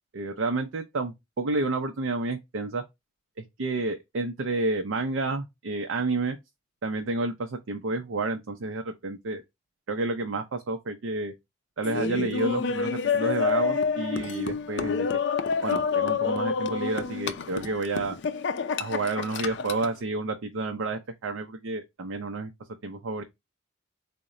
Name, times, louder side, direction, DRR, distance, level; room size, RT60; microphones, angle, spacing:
voice 1, 0.1-2.8 3.4-6.4 6.8-9.4 9.9-11.3 11.8-15.2 15.6-18.2 18.8-22.5 22.8-23.2, right 3 dB, 85° right, 0.5 m, -30 dB
Laughter, 11.8-19.9, left 5 dB, 60° left, 0.4 m, -28 dB
4.0 x 2.1 x 3.6 m
head